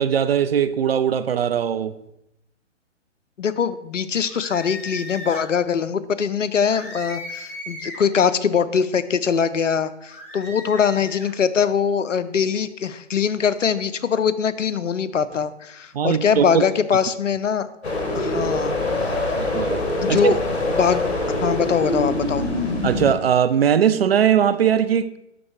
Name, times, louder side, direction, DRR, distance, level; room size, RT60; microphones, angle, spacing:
voice 1, 0.0-1.9 15.9-16.6 19.3-19.8 20.1-20.3 22.8-25.2, right 8 dB, 55° right, 0.4 m, -20 dB
voice 2, 3.4-17.7 18.1-18.7 20.0-20.4 20.7-21.0 21.4-22.4, left 7 dB, 85° left, 0.5 m, -22 dB
sound 1, 4.3-5.5 6.7-8.1 10.1-11.3, left 1 dB, 10° left, 0.4 m, -37 dB
sound 2, 17.8-23.1, left 2 dB, 60° left, 1.4 m, -24 dB
11.0 x 3.8 x 3.0 m
figure-of-eight pair, 130°, 37 cm